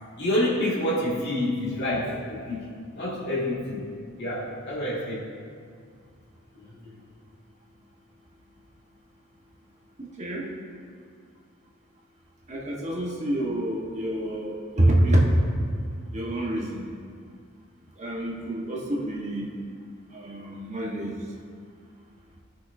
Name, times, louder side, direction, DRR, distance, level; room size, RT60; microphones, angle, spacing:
voice 1, 0.2-3.9 4.2-5.3 6.5-7.0, left 1 dB, 55° left, -6 dB, 2.2 m, -28 dB
voice 2, 10.0-10.5 12.5-15.6 16.1-16.9 18.0-19.5 20.1-21.1, right 1 dB, 35° right, -3 dB, 1.3 m, -26 dB
17.5 x 6.3 x 2.7 m, 2.1 s
head